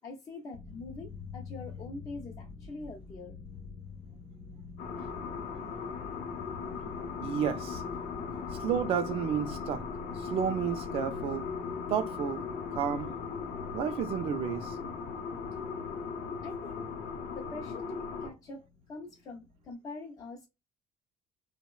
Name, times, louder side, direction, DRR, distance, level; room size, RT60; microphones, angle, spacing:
voice 1, 0.0-3.4 16.4-16.8 17.3-20.5, left 3 dB, 30° left, 0.4 m, -44 dB
sound 1, 0.5-19.7, left 4 dB, 50° left, 0.9 m, -48 dB
sound 2, 4.8-18.3, left 5 dB, 75° left, 0.7 m, -38 dB
voice 2, 7.2-7.8 8.6-9.8 10.1-11.5 11.9-12.4 12.7-13.1 13.7-14.8, right 8 dB, 50° right, 0.4 m, -31 dB
2.9 x 2.0 x 2.2 m
cardioid pair, 175°, 13 cm